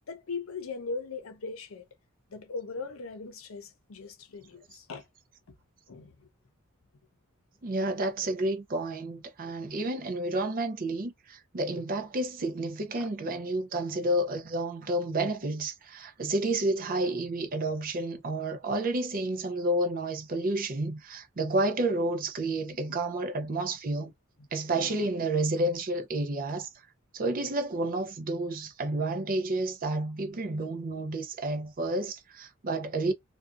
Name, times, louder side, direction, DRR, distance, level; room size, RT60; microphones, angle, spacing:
voice 1, 0.1-1.8 2.3-5.0 5.9-6.1 13.0-13.1 22.7-23.0 24.7-25.1, left 4 dB, 80° left, 0.6 m, -39 dB
voice 2, 7.6-24.1 24.5-26.7 27.1-33.1, right 2 dB, 45° right, 0.5 m, -30 dB
2.5 x 2.2 x 2.4 m
head